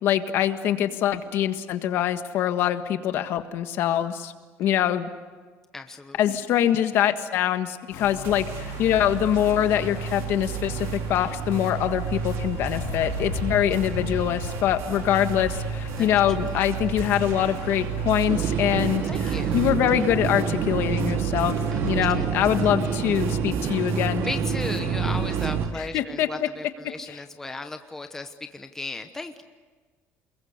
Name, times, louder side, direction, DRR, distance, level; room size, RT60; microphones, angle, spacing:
voice 1, 0.0-4.3 4.6-5.1 6.2-24.2 25.7-26.5 27.1-27.2, left 11 dB, 50° left, 8 dB, 1.6 m, -24 dB
voice 2, 5.7-6.2 16.0-16.1 16.4-16.5 19.1-19.6 21.7-22.7 24.2-29.4, left 3 dB, 10° left, 6 dB, 1.0 m, -36 dB
sound 1, 7.9-20.8, left 11 dB, 85° left, 2.1 m, -40 dB
sound 2, 8.2-25.7, right 5 dB, 65° right, 3.8 m, -31 dB
sound 3, 18.3-25.7, right 8 dB, 45° right, 1.5 m, -29 dB
29.0 x 22.0 x 8.2 m, 1.4 s
cardioid pair, 175°, 5 cm